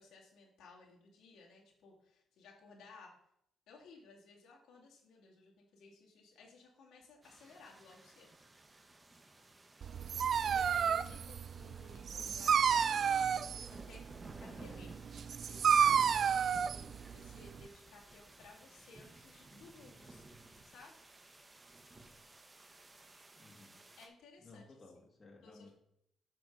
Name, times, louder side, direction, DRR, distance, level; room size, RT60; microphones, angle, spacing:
voice 1, 0.0-3.1 3.7-8.3 10.4-14.0 14.3-20.4 20.6-21.0 24.0-24.8 25.4-25.7, left 4 dB, 80° left, -3 dB, 2.2 m, -58 dB
sound 1, 7.2-24.1, right 2 dB, 25° right, 1.2 m, -56 dB
Dog, 9.8-17.7, right 7 dB, 55° right, 0.3 m, -31 dB
voice 2, 12.1-12.4 23.3-23.8 24.4-25.7, left 3 dB, 30° left, -1 dB, 2.2 m, -57 dB
8.1 x 5.2 x 5.4 m, 0.75 s
cardioid pair, 90°, 0 cm